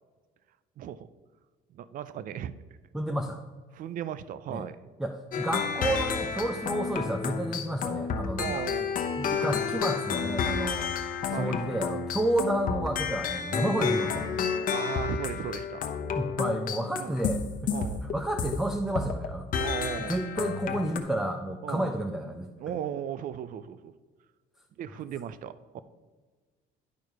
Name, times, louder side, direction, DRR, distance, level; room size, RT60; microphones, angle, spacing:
voice 1, 0.8-1.1 1.7-2.5 3.7-4.8 8.4-9.6 11.2-11.6 14.7-15.8 16.9-17.2 17.7-18.1 19.6-20.2 21.6-21.9 22.6-23.9 24.8-25.8, right 10 dB, 55° right, 14 dB, 0.5 m, -37 dB
voice 2, 2.9-3.4 4.5-4.7 5.0-8.6 9.2-10.9 11.2-14.4 16.1-17.8 18.1-19.7 20.0-22.5, right 1 dB, 5° right, 4 dB, 0.5 m, -31 dB
sound 1, 5.3-18.6 19.0-19.3 19.5-21.0, left 6 dB, 55° left, 0.8 m, -31 dB
10.5 x 4.6 x 4.7 m, 1.4 s
cardioid pair, 110°, 17 cm